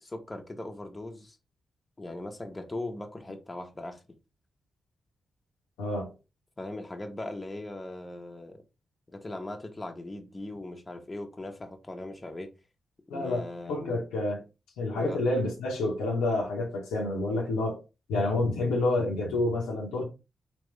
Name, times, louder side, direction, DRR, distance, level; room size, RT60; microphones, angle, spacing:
voice 1, 0.0-1.4 2.0-4.0 6.6-8.6 9.1-12.5 13.1-14.0 15.0-15.2, left 2 dB, 25° left, 0.9 m, -39 dB
voice 2, 5.8-6.1 13.1-14.4 14.8-17.8 18.1-20.0, left 2 dB, 90° left, 0.9 m, -28 dB
3.5 x 3.0 x 3.2 m
supercardioid pair, 40°, 0 cm